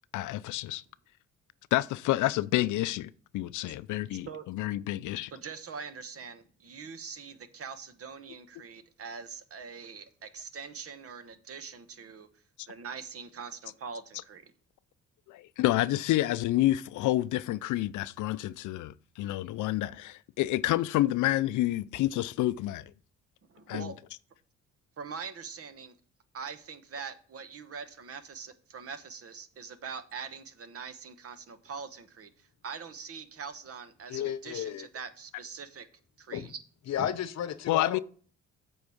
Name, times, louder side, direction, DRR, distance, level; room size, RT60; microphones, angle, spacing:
voice 1, 0.1-0.8 1.7-5.3 15.3-22.9 23.7-23.9 37.7-38.0, left 16 dB, 80° left, 0.5 m, -29 dB
voice 2, 4.1-4.5 5.3-12.3 12.7-14.5 19.6-19.7 23.5-24.0 25.0-26.0 26.3-35.9 36.2-36.6, right 5 dB, 50° right, 1.1 m, -43 dB
voice 3, 34.1-34.9 36.3-36.5 36.9-38.0, left 9 dB, 60° left, 0.9 m, -33 dB
7.9 x 4.7 x 7.0 m
cardioid pair, 90°, 30 cm